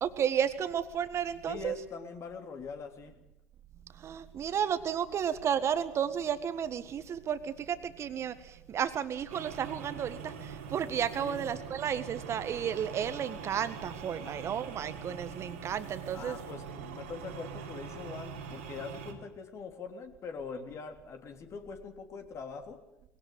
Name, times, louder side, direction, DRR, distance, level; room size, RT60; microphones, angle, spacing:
voice 1, 0.0-1.8 4.0-16.4, right 8 dB, 45° right, 12 dB, 1.7 m, -32 dB
voice 2, 1.5-3.1 11.2-11.5 14.2-14.3 16.1-22.8, left 5 dB, 45° left, 5 dB, 3.3 m, -43 dB
sound 1, 9.3-19.1, right 6 dB, 80° right, 3.3 m, -43 dB
21.0 x 17.5 x 8.6 m, 0.86 s
hypercardioid pair, 65°, 7 cm